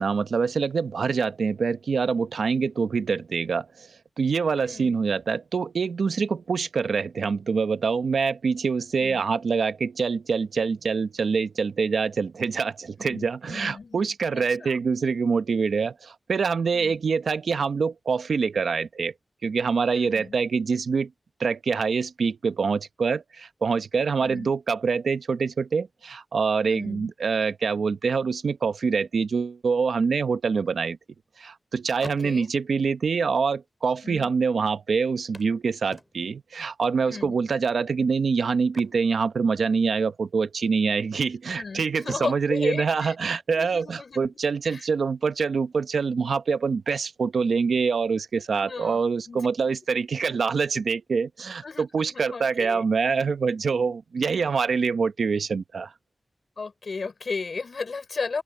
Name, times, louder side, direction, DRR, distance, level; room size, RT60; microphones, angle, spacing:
voice 1, 0.0-3.9 4.2-19.1 19.4-21.1 21.4-31.0 31.4-55.9, right 5 dB, 85° right, 0.8 m, -25 dB
voice 2, 4.6-4.9 9.0-9.3 13.0-14.0 14.3-14.8 16.7-17.0 19.9-20.3 24.2-24.5 26.6-27.1 32.0-32.5 34.0-34.3 37.1-37.4 41.5-43.2 43.5-44.4 44.7-44.9 48.5-49.4 51.6-52.8 56.6-58.4, left 4 dB, 55° left, 5.3 m, -35 dB
sound 1, 30.6-31.6 31.9-32.8 33.7-33.8 34.0-34.1 35.3-36.5 38.6-39.9 40.2-40.4 40.9-41.5 42.0-43.8 45.7-45.8 46.3-46.4, left 1 dB, 15° left, 4.3 m, -47 dB
open air
wide cardioid pair, 125°, 0 cm